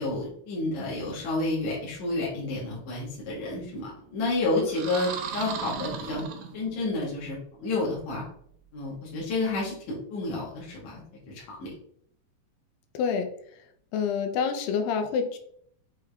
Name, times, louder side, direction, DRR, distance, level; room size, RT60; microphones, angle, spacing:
voice 1, 0.0-6.3 6.5-8.2 8.7-11.7, left 2 dB, 65° left, -6 dB, 2.0 m, -30 dB
sound 1, 4.6-6.9, right 7 dB, 75° right, 1.8 m, -36 dB
voice 2, 12.9-13.3 13.9-15.4, left 6 dB, 85° left, 5 dB, 2.4 m, -27 dB
6.2 x 3.4 x 2.2 m, 0.65 s
omnidirectional pair, 3.9 m